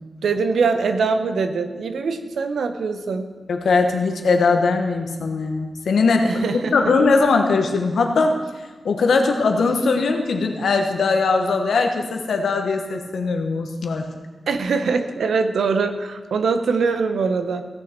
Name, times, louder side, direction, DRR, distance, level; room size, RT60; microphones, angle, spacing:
voice 1, 0.2-3.3 6.2-6.7 14.5-17.6, right 4 dB, 90° right, 8 dB, 0.8 m, -22 dB
voice 2, 3.5-6.3 6.7-8.3 8.8-14.1, left 4 dB, 80° left, 4 dB, 1.2 m, -20 dB
16.0 x 6.6 x 4.4 m, 1.3 s
wide cardioid pair, 155°, 0 cm